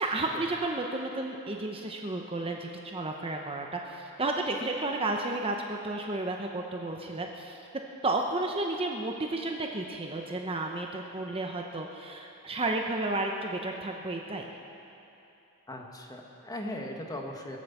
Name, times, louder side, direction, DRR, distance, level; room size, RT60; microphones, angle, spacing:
voice 1, 0.0-7.6 8.0-14.5, right 2 dB, 25° right, 2 dB, 0.8 m, -32 dB
voice 2, 15.7-17.6, left 1 dB, 15° left, 1 dB, 1.4 m, -38 dB
22.0 x 7.9 x 7.2 m, 2.9 s
head